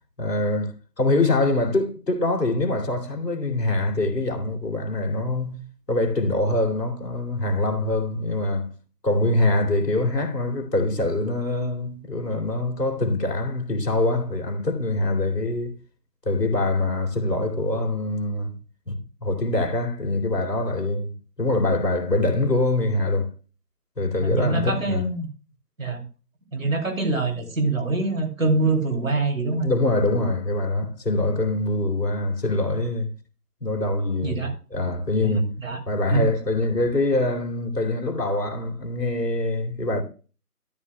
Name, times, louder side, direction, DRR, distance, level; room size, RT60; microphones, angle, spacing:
voice 1, 0.2-8.7 9.0-15.8 16.3-18.6 18.9-23.3 24.0-25.1 29.6-33.1 33.6-35.5 35.9-40.0, left 2 dB, 90° left, 2.7 m, -24 dB
voice 2, 24.2-25.3 25.8-26.0 26.5-29.7 34.2-34.5 35.2-35.8 36.1-36.3, right 3 dB, 55° right, 2.9 m, -25 dB
12.5 x 9.7 x 2.2 m
figure-of-eight pair, 175°, 47 cm